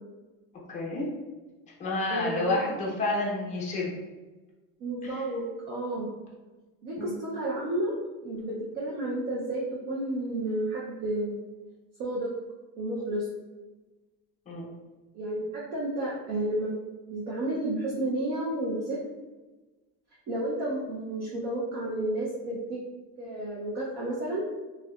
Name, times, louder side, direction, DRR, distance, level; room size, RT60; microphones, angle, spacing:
voice 1, 0.7-1.0 1.8-3.9 5.0-5.2 7.0-7.1 14.5-14.7, left 2 dB, 20° left, -4 dB, 0.6 m, -30 dB
voice 2, 2.1-2.5 4.8-6.1 6.8-7.9 8.2-11.4 12.0-12.3 12.8-13.3 15.1-16.8 17.1-19.0 20.3-22.8 23.2-24.4, right 1 dB, 45° right, -5 dB, 0.5 m, -31 dB
2.6 x 2.2 x 2.2 m, 1.2 s
cardioid pair, 145°, 39 cm